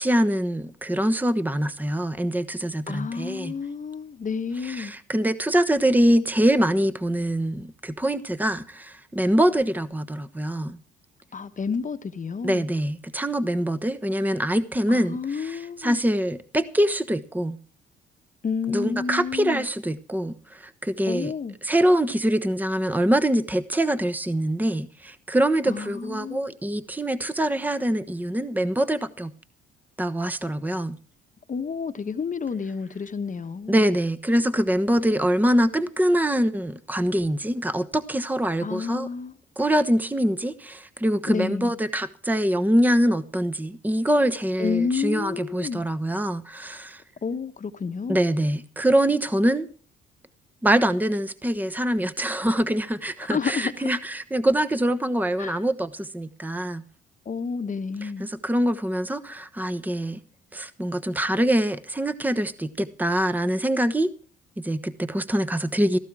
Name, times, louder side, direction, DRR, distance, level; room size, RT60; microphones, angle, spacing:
voice 1, 0.0-3.5 4.6-10.8 12.4-17.6 18.7-21.3 21.6-29.3 30.0-31.0 33.7-39.1 39.6-47.0 48.1-49.7 50.6-56.8 58.0-60.2 60.5-64.1 64.6-66.0, right 1 dB, 10° right, 1.1 m, -24 dB
voice 2, 2.9-4.9 11.3-12.6 14.9-16.0 18.4-19.6 21.1-21.6 25.7-26.5 31.5-33.8 38.6-39.4 41.3-41.7 44.6-45.8 47.2-48.2 53.3-53.9 55.4-55.6 57.2-58.3, left 5 dB, 40° left, 1.2 m, -30 dB
16.5 x 14.5 x 4.8 m
supercardioid pair, 65°, 21 cm